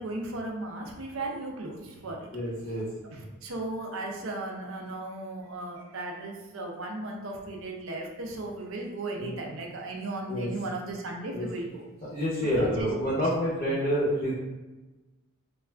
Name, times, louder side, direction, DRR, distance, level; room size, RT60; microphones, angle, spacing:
voice 1, 0.0-1.8 2.0-2.2 3.1-11.8 12.6-12.9, right 2 dB, 60° right, 1 dB, 0.5 m, -36 dB
voice 2, 2.3-2.9 9.2-9.3 10.3-10.5 11.3-11.5 12.0-14.3, equal, 25° left, -7 dB, 0.6 m, -28 dB
2.4 x 2.2 x 3.2 m, 1.1 s
head